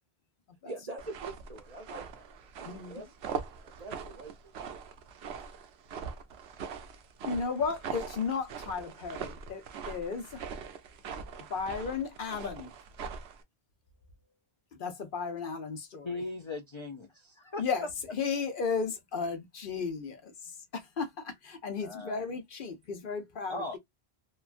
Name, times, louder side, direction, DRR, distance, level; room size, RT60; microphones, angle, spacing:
voice 1, 0.6-4.8, right 2 dB, 45° right, 0.6 m, -45 dB
sound 1, 1.0-13.4, right 6 dB, 85° right, 0.9 m, -42 dB
voice 2, 2.6-3.0 7.2-10.4 11.5-12.7 14.7-16.1 17.6-23.8, left 5 dB, 60° left, 0.8 m, -34 dB
voice 3, 16.0-17.6 21.8-22.2 23.5-23.8, left 2 dB, 40° left, 0.4 m, -38 dB
3.0 x 2.3 x 2.4 m
omnidirectional pair, 1.0 m